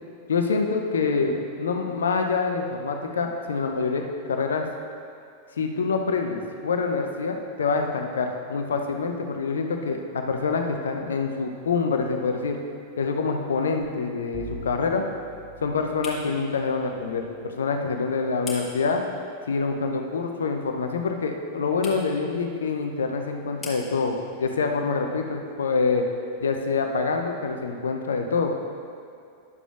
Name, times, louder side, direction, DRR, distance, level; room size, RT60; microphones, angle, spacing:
voice 1, 0.3-4.7 5.6-12.6 13.0-15.0 15.6-19.0 19.5-26.0 26.4-28.5, left 4 dB, 70° left, 4 dB, 0.6 m, -26 dB
sound 1, 12.5-27.3, left 3 dB, 20° left, 1.7 m, -48 dB
Bowed string instrument, 14.3-17.4, right 2 dB, 20° right, 0.9 m, -44 dB
11.0 x 6.9 x 2.4 m, 2.4 s
figure-of-eight pair, 90°, 0 cm